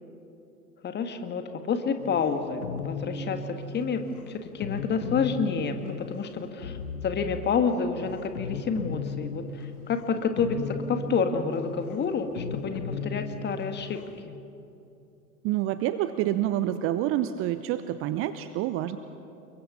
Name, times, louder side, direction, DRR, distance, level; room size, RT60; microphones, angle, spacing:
voice 1, 0.8-6.8 7.0-14.4, left 5 dB, 20° left, 7 dB, 1.8 m, -29 dB
sound 1, 2.0-14.2, left 4 dB, 65° left, 1.9 m, -37 dB
voice 2, 15.4-19.0, right 13 dB, 30° right, 13 dB, 0.7 m, -27 dB
29.0 x 22.5 x 6.0 m, 2.8 s
figure-of-eight pair, 90°, 47 cm